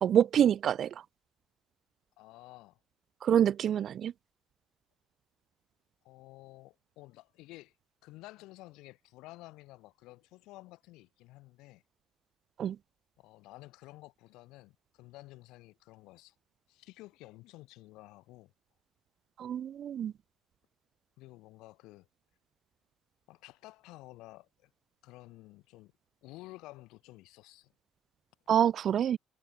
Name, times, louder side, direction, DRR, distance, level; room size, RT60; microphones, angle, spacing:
voice 1, 0.0-1.0 3.2-4.1 12.6-12.8 19.4-20.1 28.5-29.2, right 9 dB, 55° right, 0.3 m, -26 dB
voice 2, 2.2-2.8 6.0-7.7 8.0-11.8 13.2-16.4 16.7-18.5 21.2-22.1 23.3-24.7 25.0-25.9 26.2-27.7, left 19 dB, 80° left, 1.8 m, -52 dB
cardioid pair, 90°, 0 cm